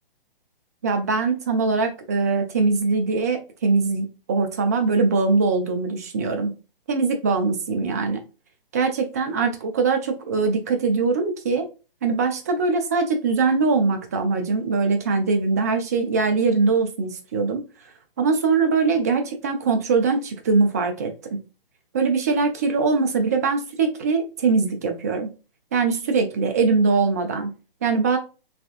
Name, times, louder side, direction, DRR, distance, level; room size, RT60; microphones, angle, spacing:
voice 1, 0.8-6.5 6.9-8.2 8.7-11.7 12.0-17.6 18.2-21.4 21.9-25.3 25.7-27.5 27.8-28.2, right 4 dB, 20° right, 5 dB, 0.4 m, -22 dB
3.4 x 3.4 x 2.4 m, 0.31 s
figure-of-eight pair, 140°, 29 cm